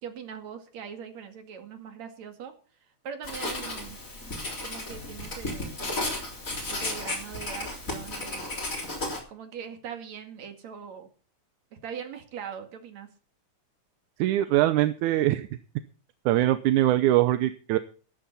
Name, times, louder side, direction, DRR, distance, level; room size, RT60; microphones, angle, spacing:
voice 1, 0.0-2.5 3.0-4.0 4.6-6.2 6.7-8.7 9.3-11.1 11.7-13.1, right 7 dB, 65° right, 6 dB, 3.4 m, -41 dB
Writing, 3.2-9.2, left 2 dB, 25° left, 3.9 m, -34 dB
voice 2, 14.2-15.5 16.3-17.8, right 14 dB, 85° right, 11 dB, 2.2 m, -22 dB
13.0 x 13.0 x 4.2 m, 0.38 s
omnidirectional pair, 3.4 m